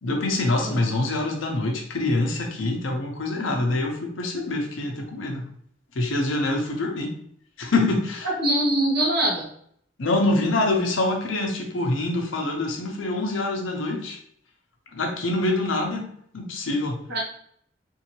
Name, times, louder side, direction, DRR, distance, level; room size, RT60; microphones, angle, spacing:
voice 1, 0.0-5.5 5.9-7.2 7.6-8.3 10.0-14.2 14.9-17.0, left 2 dB, 80° left, 2 dB, 0.8 m, -25 dB
voice 2, 8.4-9.5 17.1-17.2, right 1 dB, 60° right, -4 dB, 1.5 m, -23 dB
3.7 x 2.7 x 3.0 m, 0.65 s
head